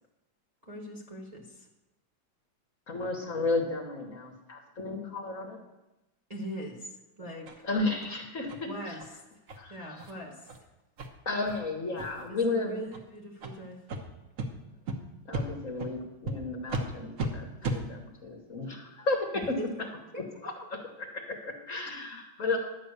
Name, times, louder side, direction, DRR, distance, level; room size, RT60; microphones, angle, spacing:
voice 1, 0.6-1.7 6.3-6.9 7.2-7.6 8.6-9.0 9.7-10.5 12.3-13.8 19.6-19.9 20.1-20.5 22.4-22.5, right 1 dB, 20° right, 0 dB, 1.2 m, -41 dB
voice 2, 2.9-5.6 7.6-9.0 9.5-10.1 11.2-12.7 15.3-19.4 20.2-22.6, left 3 dB, 45° left, 1 dB, 1.5 m, -33 dB
sound 1, 7.5-7.6 8.0-8.1 8.5-8.6 9.0-9.1 9.5-9.6 10.0-10.1 10.5-10.6 11.0-11.1 11.5-11.6 12.0-12.3 12.9-13.0 13.4-13.5 13.9-14.0 14.4-14.5 14.9-15.0 15.3-15.5 15.8-15.9 16.3-16.4 16.7-16.8 17.2-17.3 17.6-17.8, right 2 dB, 50° right, 1.3 m, -34 dB
11.0 x 5.9 x 8.1 m, 0.99 s
omnidirectional pair, 2.2 m